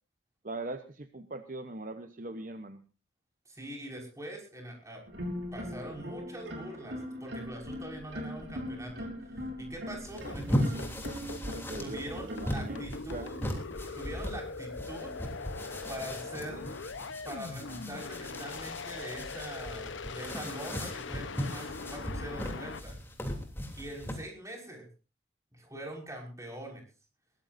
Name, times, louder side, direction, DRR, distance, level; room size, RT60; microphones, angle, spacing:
voice 1, 0.4-2.8 11.4-13.5, right 2 dB, 45° right, 8 dB, 0.9 m, -41 dB
voice 2, 3.5-5.0 5.5-10.9 11.8-13.4 13.9-15.1 15.9-16.7 17.2-23.0 23.8-24.9 25.5-26.8, right 1 dB, 15° right, 0 dB, 5.7 m, -43 dB
sound 1, 5.1-12.8, equal, 70° right, 5.9 m, -40 dB
sound 2, 10.0-24.2, equal, 10° left, 3.1 m, -38 dB
sound 3, 10.2-22.8, left 4 dB, 85° left, 1.0 m, -41 dB
22.0 x 17.5 x 2.7 m, 0.34 s
head